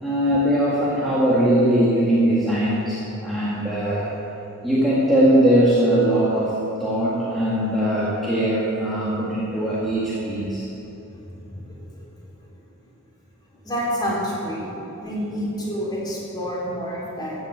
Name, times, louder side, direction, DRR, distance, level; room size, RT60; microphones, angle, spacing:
voice 1, 0.0-4.1 4.6-10.7 14.6-14.7, right 1 dB, ahead, -9 dB, 1.9 m, -20 dB
voice 2, 11.5-12.0 13.6-14.7 15.0-17.4, equal, 20° left, -6 dB, 3.7 m, -28 dB
14.0 x 8.0 x 8.0 m, 3.0 s
head